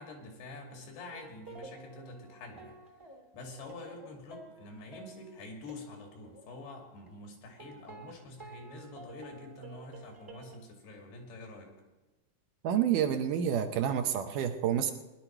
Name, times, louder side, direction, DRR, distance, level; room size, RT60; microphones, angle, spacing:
voice 1, 0.0-2.8 3.3-11.7, left 2 dB, 90° left, 2 dB, 4.5 m, -47 dB
sound 1, 1.1-5.8 6.2-6.6 7.1-7.2 7.6-10.6, right 3 dB, 15° right, 0.8 m, -51 dB
voice 2, 12.6-14.9, right 9 dB, 75° right, 7 dB, 2.0 m, -28 dB
20.0 x 11.5 x 4.5 m, 1.1 s
omnidirectional pair, 4.6 m